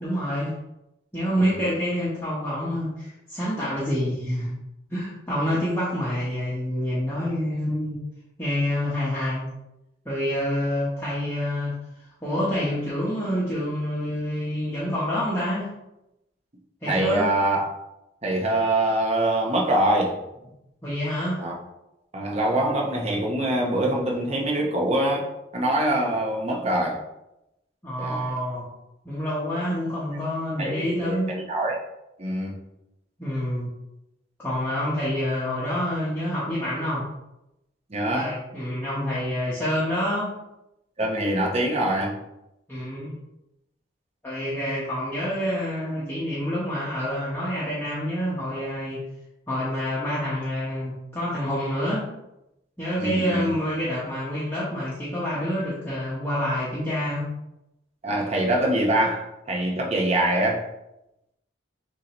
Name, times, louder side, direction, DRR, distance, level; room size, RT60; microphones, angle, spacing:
voice 1, 0.0-0.6 1.1-4.5 4.9-8.0 8.4-9.5 10.0-11.8 12.2-15.7 16.8-17.3 20.8-21.4 27.8-28.7 29.0-31.4 33.2-33.7 34.4-37.1 38.1-40.3 42.7-43.2 44.2-49.0 49.5-52.1 52.8-57.3, equal, 10° left, -9 dB, 0.9 m, -27 dB
voice 2, 16.9-17.7 18.2-20.2 21.4-21.6 22.1-27.0 28.0-28.3 30.6-31.8 32.2-32.6 37.9-38.3 41.0-42.2 53.0-53.5 58.0-60.7, right 1 dB, 35° right, -1 dB, 0.8 m, -24 dB
6.3 x 2.7 x 3.0 m, 0.89 s
head